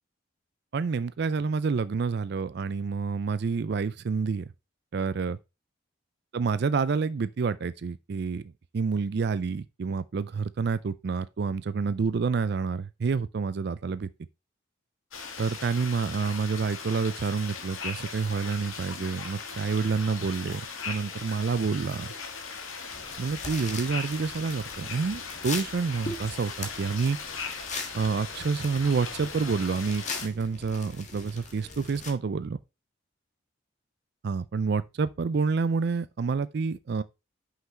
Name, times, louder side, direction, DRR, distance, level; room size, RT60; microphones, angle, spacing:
voice 1, 0.7-4.5 4.9-5.4 6.3-14.1 15.4-20.6 20.9-22.1 23.2-27.2 27.9-32.6 34.2-37.0, right 5 dB, 55° right, 0.4 m, -28 dB
sound 1, 15.1-30.3, left 5 dB, 90° left, 1.5 m, -39 dB
sound 2, 22.9-32.1, left 4 dB, 35° left, 1.5 m, -40 dB
5.8 x 5.7 x 4.2 m
head